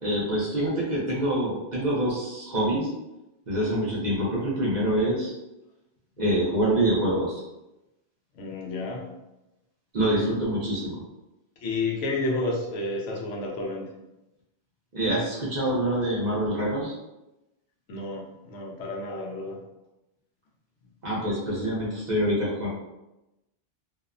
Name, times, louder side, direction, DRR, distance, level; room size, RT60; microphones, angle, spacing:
voice 1, 0.0-2.9 3.5-5.3 6.2-7.4 9.9-11.0 14.9-16.9 21.0-22.7, right 1 dB, 45° right, -6 dB, 0.7 m, -26 dB
voice 2, 8.3-9.1 11.6-13.9 17.9-19.6, left 2 dB, 80° left, -1 dB, 0.9 m, -31 dB
2.7 x 2.0 x 2.4 m, 0.96 s
omnidirectional pair, 1.2 m